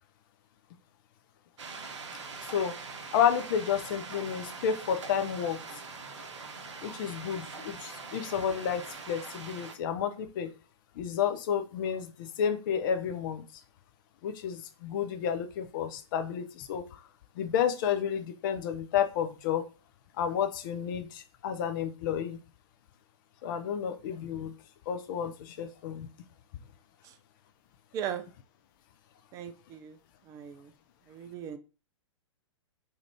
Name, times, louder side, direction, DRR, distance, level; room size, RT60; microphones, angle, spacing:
sound 1, 1.6-9.7, right 4 dB, 65° right, 0.6 m, -43 dB
voice 1, 3.1-5.6 6.8-10.5 11.0-13.6 14.2-17.0 17.4-19.7 20.2-22.4 23.4-24.5 24.9-26.1, left 8 dB, 40° left, 0.4 m, -31 dB
voice 2, 27.9-28.2 29.3-30.0 30.3-30.7 31.1-31.6, right 9 dB, 20° right, 0.3 m, -38 dB
2.7 x 2.4 x 3.3 m
figure-of-eight pair, 110°, 16 cm